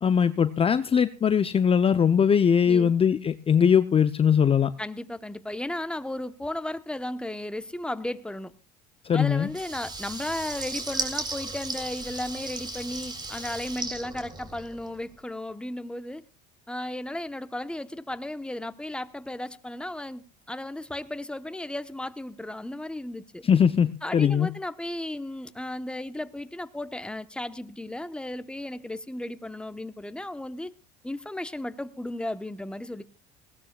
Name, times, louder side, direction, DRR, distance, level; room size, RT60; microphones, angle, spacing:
voice 1, 0.0-4.7 9.0-9.5 23.4-24.5, left 7 dB, 30° left, 0.6 m, -21 dB
voice 2, 4.8-8.5 9.1-16.2 16.7-23.4 24.0-30.7 31.0-33.0, left 1 dB, 5° left, 1.0 m, -35 dB
Water tap faucet / Liquid, 9.5-15.0, right 3 dB, 20° right, 3.6 m, -35 dB
20.0 x 17.5 x 2.4 m
hypercardioid pair, 70°, 21 cm